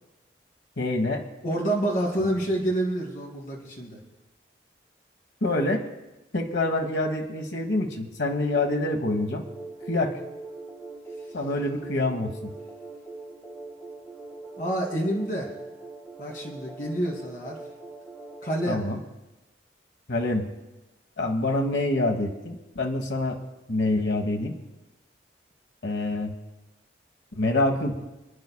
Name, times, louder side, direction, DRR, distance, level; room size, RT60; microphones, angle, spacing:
voice 1, 0.8-1.2 5.4-5.8 6.3-9.4 9.9-10.2 11.3-12.5 18.6-19.0 20.1-20.5 21.2-23.4 23.7-24.5 25.8-26.3 27.4-27.9, left 2 dB, 85° left, 4 dB, 1.3 m, -26 dB
voice 2, 1.4-4.0 14.6-15.5 16.2-17.6 18.4-18.8, right 1 dB, 50° left, -2 dB, 2.8 m, -28 dB
sound 1, 8.3-18.7, right 3 dB, 20° left, 2.0 m, -42 dB
29.5 x 9.8 x 2.3 m, 1.0 s
head